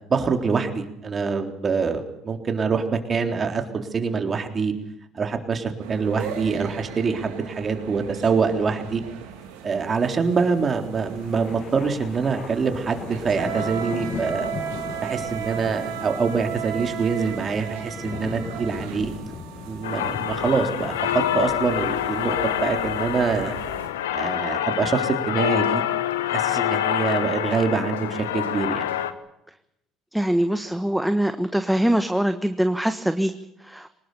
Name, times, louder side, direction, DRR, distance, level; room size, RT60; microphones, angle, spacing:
voice 1, 0.1-4.7 5.1-9.0 9.6-14.5 15.0-19.1 19.7-23.6 24.1-25.8 26.3-28.9, right 5 dB, 35° right, 5 dB, 3.7 m, -25 dB
sound 1, 5.8-23.9, right 9 dB, 80° right, 3.3 m, -36 dB
sound 2, 10.9-21.5, left 7 dB, 50° left, 1.7 m, -38 dB
sound 3, 19.8-29.1, left 11 dB, 85° left, 1.2 m, -26 dB
voice 2, 30.1-33.3 33.6-33.9, right 1 dB, 5° right, 9 dB, 1.4 m, -23 dB
23.5 x 20.0 x 7.0 m, 0.81 s
hypercardioid pair, 65°, 0 cm